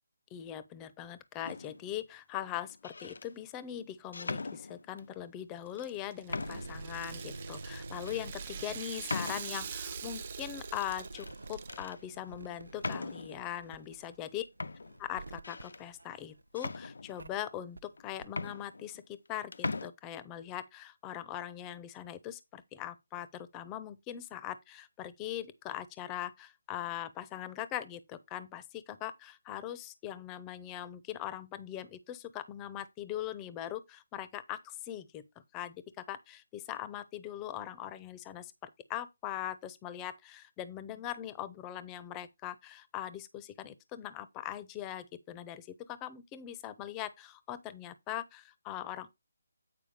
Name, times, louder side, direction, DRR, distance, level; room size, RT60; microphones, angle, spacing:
voice 1, 0.3-14.4 15.0-35.2 35.5-49.1, left 12 dB, 15° left, 0.7 m, -41 dB
sound 1, 1.4-1.9 2.7-3.3 4.1-5.1 5.8-5.9 6.3-6.8 7.3-7.4 8.1-8.2 9.1-9.7 10.9-11.4 11.7-12.0 12.8-13.4 14.2-14.3 14.6-15.8 16.5-17.4 18.0-18.1 18.3-19.3 19.5-19.9, left 3 dB, 70° left, 0.6 m, -39 dB
Rattle (instrument), 5.7-11.9, right 8 dB, 35° right, 0.6 m, -45 dB
sound 2, 6.2-16.6 17.2-17.3 17.8-17.9 18.2-18.3, right 2 dB, 80° right, 0.7 m, -47 dB
8.8 x 4.8 x 4.8 m
figure-of-eight pair, 155°, 0 cm